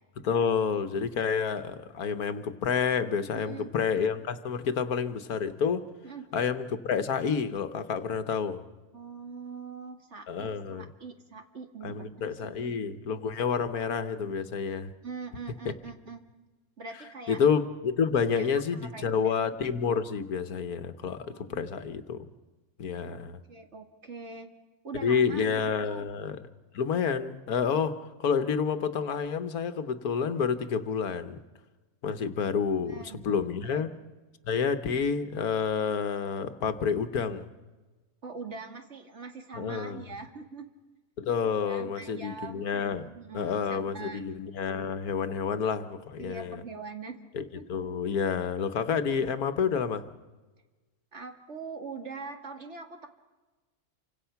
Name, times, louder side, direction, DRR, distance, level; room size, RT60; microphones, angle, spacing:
voice 1, 0.2-5.9 6.3-8.6 10.3-10.9 11.8-14.9 15.6-15.7 17.3-22.3 22.8-23.4 25.0-26.4 26.7-31.4 32.0-33.9 34.4-37.5 39.6-40.0 41.2-43.1 43.3-46.6 47.3-47.4 47.7-50.0, left 6 dB, 85° left, 10 dB, 1.6 m, -29 dB
voice 2, 3.4-3.7 6.0-6.2 8.9-12.1 12.3-12.7 15.0-16.2 16.8-17.4 18.2-18.5 18.7-19.4 21.2-21.7 23.1-23.2 23.5-24.5 24.8-26.1 32.8-33.4 33.6-33.8 38.2-40.7 41.6-44.2 46.2-47.7 51.1-53.1, right 4 dB, 50° right, 5 dB, 2.2 m, -43 dB
29.0 x 25.5 x 5.8 m, 1.2 s
omnidirectional pair, 1.5 m